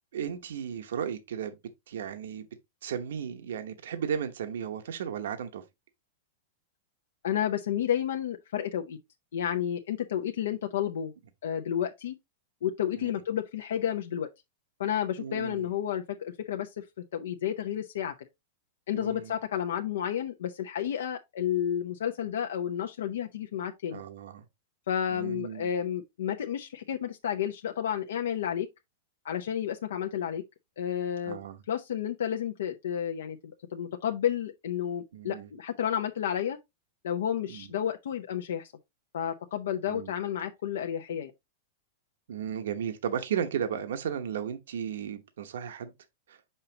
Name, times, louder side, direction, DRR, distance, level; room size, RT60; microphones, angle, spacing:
voice 1, 0.1-1.6 1.9-2.5 2.8-5.6 13.0-13.2 15.2-15.7 18.9-19.4 23.9-24.4 25.1-25.7 31.2-31.6 35.1-35.5 37.5-37.7 39.9-40.1 42.3-45.9 46.3-46.4, right 8 dB, 75° right, 1.0 m, -35 dB
voice 2, 7.2-9.0 9.3-11.1 11.4-12.1 12.6-14.3 14.8-16.8 17.1-18.1 18.9-24.0 24.9-28.7 29.2-30.4 30.8-31.4 31.7-36.6 37.0-38.7 39.1-41.3, left 9 dB, 80° left, 0.7 m, -31 dB
6.8 x 5.6 x 2.8 m
supercardioid pair, 175°, 0 cm